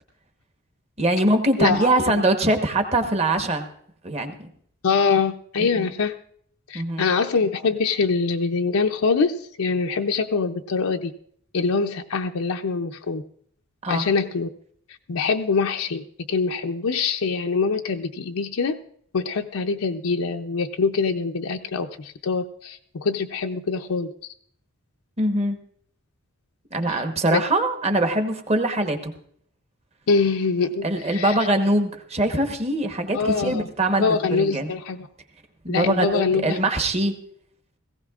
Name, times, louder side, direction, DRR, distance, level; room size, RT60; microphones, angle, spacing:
voice 1, 1.0-3.7 4.0-4.5 5.6-5.9 6.7-7.0 13.8-14.1 25.2-25.6 26.7-29.1 30.8-34.7 35.6-37.1, right 1 dB, 30° right, 6 dB, 1.0 m, -23 dB
voice 2, 1.6-2.2 4.8-6.2 6.7-11.1 11.5-13.2 13.9-14.5 15.1-18.8 19.1-24.3 26.9-27.0 27.3-27.4 30.1-31.3 33.1-33.7 34.0-35.1 35.7-36.6, left 4 dB, 75° left, 4 dB, 0.5 m, -24 dB
18.0 x 16.0 x 2.4 m, 0.63 s
head